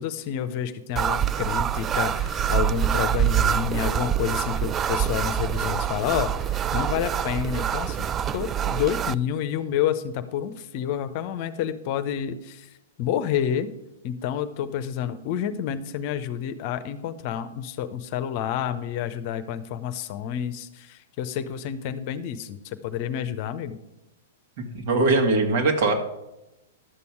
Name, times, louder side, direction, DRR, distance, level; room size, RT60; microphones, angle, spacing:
voice 1, 0.0-12.7 13.0-13.7 14.0-23.8, left 9 dB, 45° left, 11 dB, 0.8 m, -29 dB
sound 1, 1.0-9.2, right 9 dB, 25° right, 0.3 m, -25 dB
voice 2, 24.6-25.9, right 3 dB, 55° right, 3 dB, 2.0 m, -21 dB
11.5 x 7.0 x 4.8 m, 0.93 s
figure-of-eight pair, 110°, 0 cm